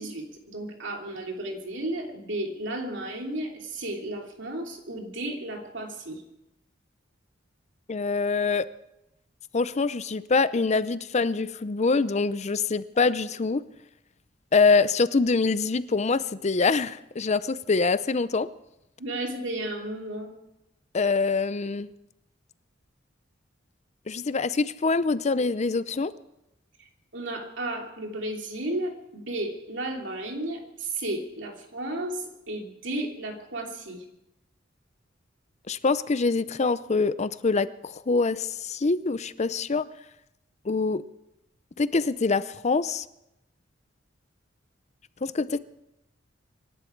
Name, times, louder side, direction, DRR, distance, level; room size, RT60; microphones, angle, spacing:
voice 1, 0.0-6.2 19.0-20.3 27.1-34.0, right 1 dB, 70° right, 1 dB, 3.0 m, -33 dB
voice 2, 7.9-8.7 9.5-13.6 14.5-18.5 20.9-21.9 24.1-26.1 35.7-39.9 40.7-41.0 41.8-43.0 45.2-45.6, left 4 dB, 35° left, 15 dB, 0.6 m, -25 dB
25.0 x 12.0 x 4.6 m, 0.87 s
head